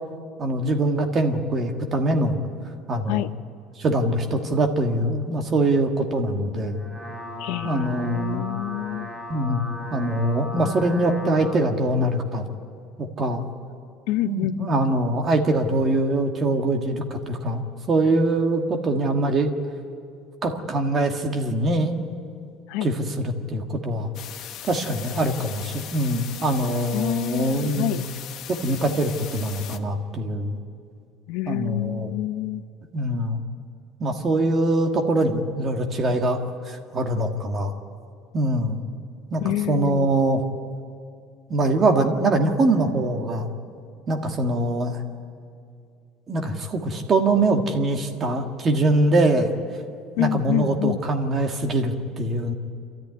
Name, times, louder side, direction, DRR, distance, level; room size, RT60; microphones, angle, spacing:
voice 1, 0.4-2.4 2.9-3.3 3.8-6.8 7.6-8.4 9.3-9.6 9.9-12.4 13.0-13.4 14.2-17.6 17.9-19.5 20.4-22.1 22.8-24.1 24.6-28.0 28.5-30.6 31.5-32.1 32.9-33.4 34.0-36.4 36.7-37.7 38.3-38.8 39.3-39.4 39.7-40.4 41.5-43.5 44.1-45.0 46.3-49.5 50.2-52.5, right 2 dB, 25° right, 4 dB, 1.6 m, -23 dB
sound 1, 6.6-11.6, left 2 dB, ahead, 1.7 m, -36 dB
voice 2, 7.4-9.1 14.1-14.8 22.7-22.9 26.9-28.0 31.3-32.6 39.4-40.2 50.2-51.0, left 15 dB, 70° left, 12 dB, 0.7 m, -27 dB
sound 2, 24.1-29.8, left 10 dB, 45° left, 1.0 m, -38 dB
27.5 x 13.5 x 9.4 m, 2.4 s
cardioid pair, 175°, 0 cm